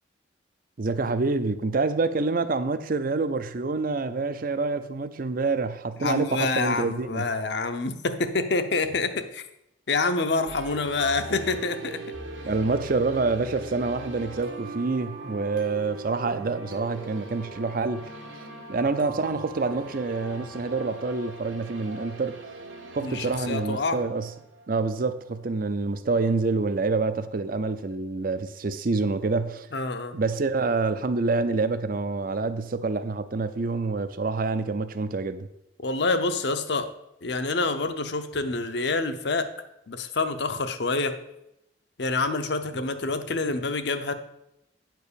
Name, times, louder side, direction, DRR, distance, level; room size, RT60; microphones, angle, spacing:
voice 1, 0.8-7.3 12.4-18.1 18.7-22.4 22.9-24.3 24.7-29.7 30.1-35.5, right 3 dB, 45° right, 0.5 m, -27 dB
voice 2, 6.0-9.4 9.9-12.0 23.0-24.0 29.7-30.1 35.8-36.9 37.2-39.5 39.9-41.1 42.0-44.1, left 3 dB, 60° left, 0.8 m, -27 dB
sound 1, 10.5-25.3, right 2 dB, 90° right, 1.7 m, -40 dB
9.4 x 4.6 x 6.9 m
head